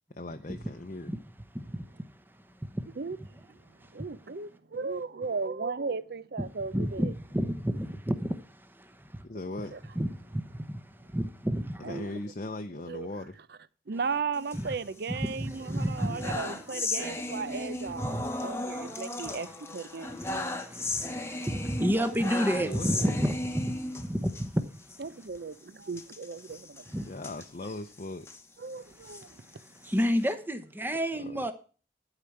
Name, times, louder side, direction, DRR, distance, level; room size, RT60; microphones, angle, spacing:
voice 1, 0.1-1.1 9.2-9.7 11.8-13.4 22.5-23.1 27.1-28.3 31.2-31.5, left 2 dB, 45° left, 0.6 m, -38 dB
voice 2, 1.5-2.8 3.8-4.0 6.7-9.2 9.9-12.0 14.5-14.7 15.2-16.4 18.0-19.0 19.2-19.4 20.2-25.0 26.9-27.1 29.4-29.5 29.8-31.5, equal, 10° right, 0.9 m, -31 dB
voice 3, 3.0-7.1 9.7-9.8 11.8-12.1 12.9-13.1 13.9-20.7 22.5-22.7 25.0-26.8 28.6-29.6, right 4 dB, 60° right, 0.6 m, -36 dB
sound 1, 14.3-15.3 15.7-24.5 24.8-25.0 25.2-25.4 25.9-28.4 28.9-30.3, left 2 dB, 15° left, 1.0 m, -36 dB
12.0 x 5.0 x 7.8 m
head